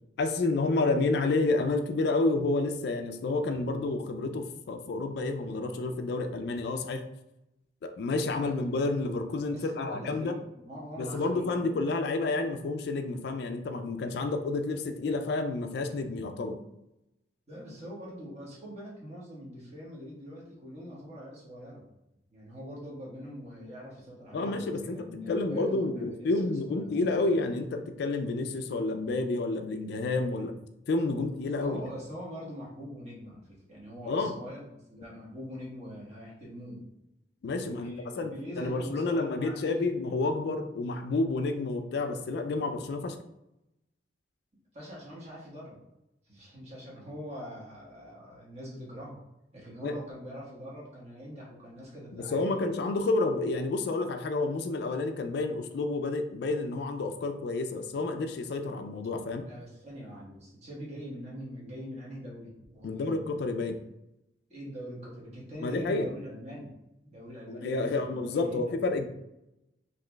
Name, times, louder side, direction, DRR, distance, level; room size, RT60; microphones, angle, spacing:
voice 1, 0.2-7.0 7.8-10.3 11.0-16.6 24.3-30.5 30.9-31.8 34.1-34.3 37.4-43.2 49.8-50.0 52.1-59.5 62.8-63.8 65.6-66.1 67.5-69.1, left 3 dB, 65° left, 7 dB, 0.3 m, -30 dB
voice 2, 9.5-11.8 17.5-21.8 22.3-27.2 31.6-34.6 34.9-36.8 37.5-39.9 44.7-45.8 46.3-49.2 49.5-52.6 59.4-63.3 64.5-66.7 67.0-68.7, equal, 40° right, -5 dB, 1.3 m, -43 dB
3.8 x 2.9 x 2.2 m, 0.87 s
head